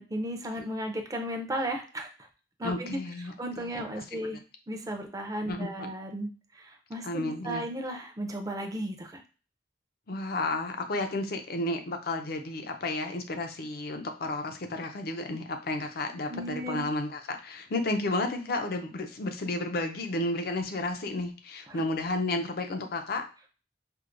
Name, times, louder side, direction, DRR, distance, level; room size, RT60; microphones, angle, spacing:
voice 1, 0.0-2.1 2.6-3.0 3.4-4.4 4.7-9.2 16.3-16.9 21.7-21.8, right 1 dB, 20° right, 3 dB, 0.5 m, -35 dB
voice 2, 2.6-3.7 3.9-4.2 5.5-5.9 7.0-7.6 10.1-23.5, left 2 dB, 60° left, 6 dB, 0.5 m, -32 dB
4.5 x 2.1 x 2.5 m, 0.36 s
head